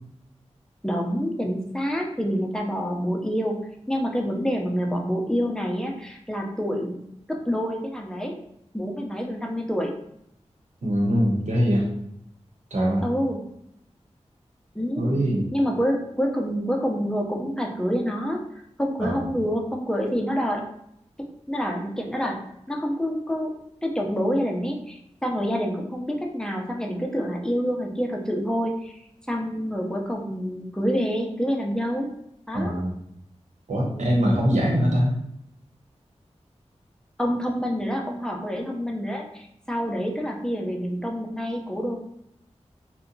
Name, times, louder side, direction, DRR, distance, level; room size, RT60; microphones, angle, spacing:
voice 1, 0.8-3.6 3.9-7.0 7.3-8.3 8.7-9.9 13.0-13.4 14.7-15.2 15.5-18.4 18.8-20.6 21.5-22.4 22.7-23.5 23.8-29.0 29.3-32.1 32.5-32.7 33.9-34.4 37.2-42.0, equal, 5° left, 0 dB, 0.6 m, -27 dB
voice 2, 10.8-11.9 12.7-13.0 15.0-15.5 19.0-19.3 32.5-32.9 33.7-35.1, equal, 90° right, -3 dB, 1.0 m, -22 dB
2.8 x 2.2 x 3.8 m, 0.76 s
wide cardioid pair, 75°, 12 cm